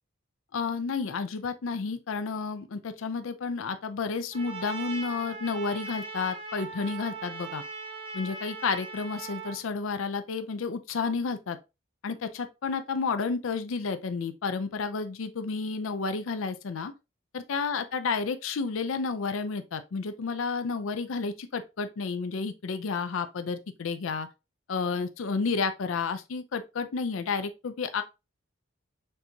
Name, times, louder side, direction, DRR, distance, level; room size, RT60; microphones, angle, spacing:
voice 1, 0.5-7.6 8.1-11.6 12.0-16.9 17.3-24.3 24.7-28.0, left 4 dB, 85° left, 0.5 m, -31 dB
Trumpet, 4.3-9.6, right 4 dB, 30° right, 0.8 m, -39 dB
6.6 x 2.7 x 2.8 m
head